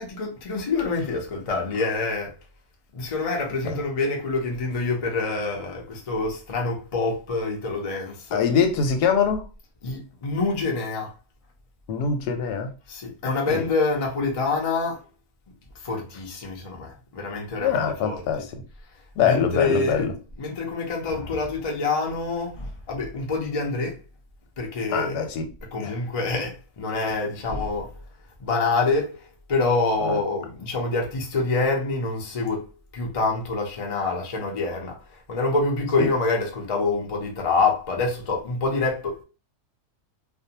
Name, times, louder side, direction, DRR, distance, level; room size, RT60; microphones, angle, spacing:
voice 1, 0.0-2.3 2.9-8.4 9.8-11.1 12.9-15.0 15.8-18.2 19.2-20.1 20.4-24.0 24.6-25.3 25.7-27.9 28.4-29.2 29.5-32.7 32.9-35.0 35.3-39.2, left 3 dB, 60° left, 0.3 m, -26 dB
voice 2, 8.3-9.5 11.9-12.7 13.5-13.7 17.6-18.6 19.2-20.1 24.9-25.5 25.8-26.0 30.0-30.2 36.0-36.1, left 6 dB, 85° left, 1.2 m, -23 dB
2.6 x 2.2 x 2.7 m
omnidirectional pair, 1.6 m